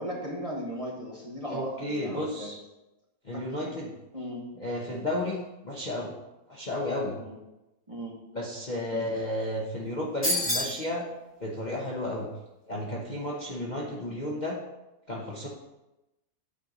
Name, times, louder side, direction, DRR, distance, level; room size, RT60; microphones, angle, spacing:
voice 1, 0.0-2.5 3.3-3.4 4.1-4.4 7.2-7.4 7.9-8.1 8.9-9.0, equal, 20° right, -3 dB, 1.4 m, -36 dB
voice 2, 1.5-2.6 3.2-3.9 4.6-6.1 6.5-7.2 8.3-11.0 11.4-12.3 12.7-14.6 15.1-15.5, left 1 dB, 30° left, -4 dB, 1.0 m, -32 dB
sound 1, 10.2-10.8, left 1 dB, 10° left, 1.7 m, -27 dB
8.7 x 4.5 x 5.3 m, 0.97 s
omnidirectional pair, 1.8 m